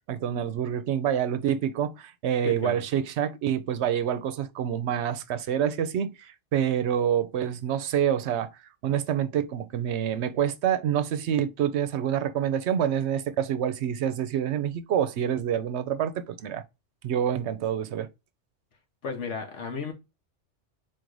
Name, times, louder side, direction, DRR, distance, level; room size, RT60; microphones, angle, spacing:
voice 1, 0.1-8.5 8.8-16.6 17.0-18.1, right 9 dB, 75° right, 0.8 m, -27 dB
voice 2, 2.4-2.8 19.0-19.9, left 5 dB, 80° left, 1.3 m, -33 dB
4.1 x 2.6 x 4.6 m
omnidirectional pair, 1.2 m